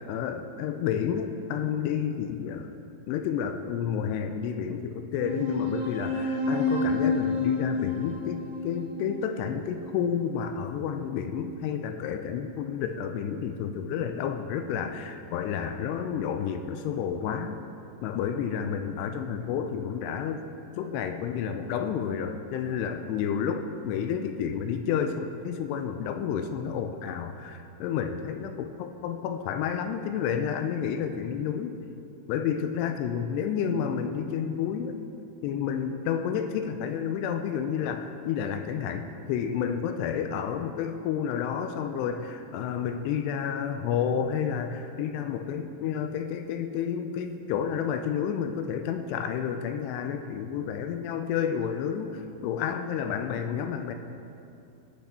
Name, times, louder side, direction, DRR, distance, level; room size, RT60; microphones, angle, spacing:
voice 1, 0.1-2.8 3.1-17.6 18.0-20.4 20.8-31.7 32.3-35.0 35.4-54.0, left 7 dB, 85° left, 7 dB, 2.4 m, -30 dB
sound 1, 5.2-10.1, left 2 dB, 80° right, 3.7 m, -29 dB
18.5 x 6.9 x 4.3 m, 2.6 s
omnidirectional pair, 5.3 m